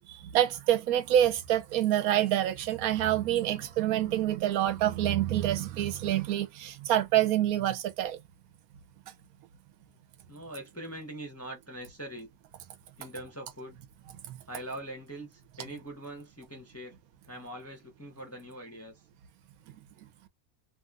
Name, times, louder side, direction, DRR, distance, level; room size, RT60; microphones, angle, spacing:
voice 1, 0.3-8.2 14.3-14.4, right 12 dB, 80° right, 1.1 m, -27 dB
voice 2, 10.3-12.3 13.0-13.8 14.5-17.0 17.3-18.9, right 1 dB, 15° left, 0.5 m, -42 dB
3.1 x 2.4 x 2.3 m
omnidirectional pair, 1.5 m